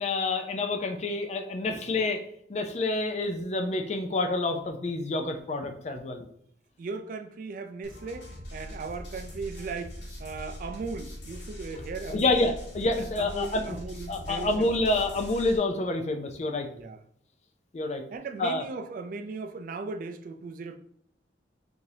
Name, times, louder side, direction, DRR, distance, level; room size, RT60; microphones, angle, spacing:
voice 1, 0.0-2.2 2.5-6.2 12.1-13.8 14.1-16.7 17.7-18.0 18.4-18.6, left 2 dB, 35° left, 6 dB, 0.4 m, -28 dB
voice 2, 6.8-12.4 13.0-14.7 16.6-17.0 18.1-20.8, right 4 dB, 45° right, 7 dB, 0.3 m, -38 dB
sound 1, 7.8-15.6, equal, 80° left, 1.1 m, -42 dB
4.7 x 2.7 x 2.7 m, 0.66 s
head